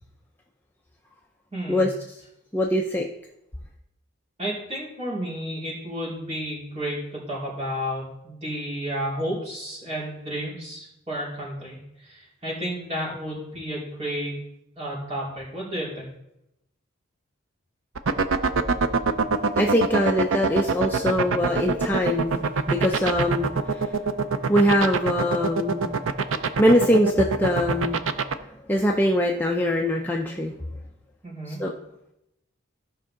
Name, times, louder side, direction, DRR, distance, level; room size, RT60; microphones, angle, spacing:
voice 1, 1.5-1.9 4.4-14.3 14.8-16.1 31.2-31.6, equal, 30° right, -7 dB, 4.1 m, -32 dB
voice 2, 2.5-3.1 19.6-23.9 24.5-26.0 26.6-28.0 28.7-30.5 31.5-31.7, equal, 10° left, 0 dB, 0.5 m, -22 dB
sound 1, 18.0-28.3, right 5 dB, 70° right, 0.6 m, -23 dB
15.0 x 5.6 x 3.8 m, 0.84 s
head